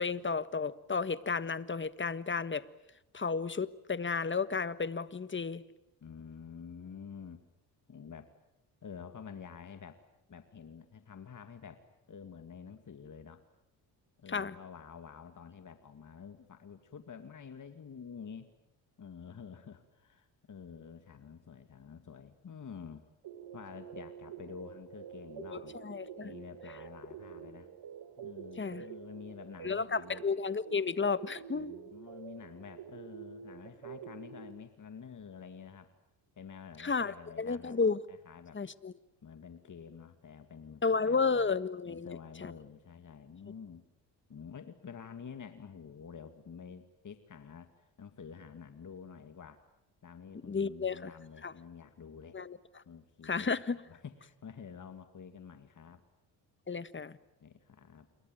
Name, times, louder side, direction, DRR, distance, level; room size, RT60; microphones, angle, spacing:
voice 1, 0.0-2.6 3.1-5.6 14.3-14.6 25.5-26.3 28.6-28.8 29.6-31.7 36.8-38.0 38.5-38.9 40.8-42.5 50.5-51.1 51.4-51.5 52.3-52.6 53.2-53.8 56.7-57.2, left 5 dB, 25° left, 15 dB, 1.5 m, -32 dB
voice 2, 6.0-7.4 7.9-8.3 8.8-10.0 10.3-11.8 12.1-13.4 14.2-18.5 19.0-23.1 23.5-25.8 26.2-27.7 28.2-30.2 31.5-35.9 36.4-37.8 38.1-38.6 39.2-41.5 41.9-43.8 44.3-49.6 50.0-52.4 52.9-53.5 53.9-56.0 57.4-58.1, left 6 dB, 40° left, 9 dB, 2.2 m, -49 dB
sound 1, 23.2-34.5, right 8 dB, 65° right, 2.2 m, -48 dB
27.5 x 23.5 x 9.2 m, 0.87 s
supercardioid pair, 65°, 45 cm